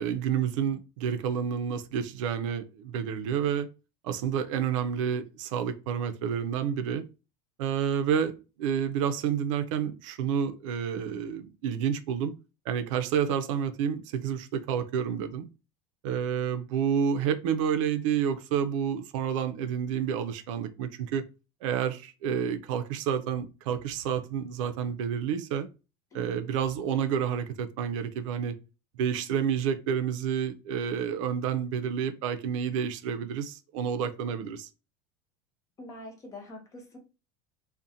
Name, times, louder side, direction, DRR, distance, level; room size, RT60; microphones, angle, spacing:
voice 1, 0.0-3.7 4.0-7.0 7.6-12.3 12.7-15.5 16.0-21.2 21.6-25.7 26.1-28.6 29.0-34.7, right 8 dB, 85° right, 0.4 m, -29 dB
voice 2, 35.8-37.0, left 1 dB, 20° left, 0.5 m, -44 dB
2.5 x 2.1 x 2.6 m
cardioid pair, 165°, 16 cm